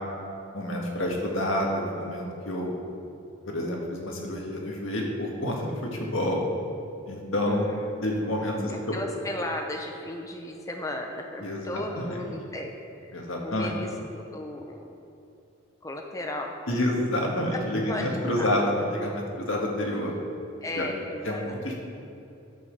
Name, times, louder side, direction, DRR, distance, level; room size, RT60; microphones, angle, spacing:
voice 1, 0.5-2.7 3.5-6.4 7.1-7.7 8.0-8.7 11.4-12.2 13.1-13.7 16.7-20.1 20.7-20.9 21.2-21.7, left 1 dB, 80° left, -1 dB, 1.7 m, -28 dB
voice 2, 7.5-12.7 13.0-13.1 13.4-14.9 15.8-16.5 17.5-18.1 18.4-18.5 20.6-21.7, left 1 dB, 15° left, 2 dB, 0.6 m, -36 dB
9.5 x 5.8 x 6.7 m, 2.8 s
head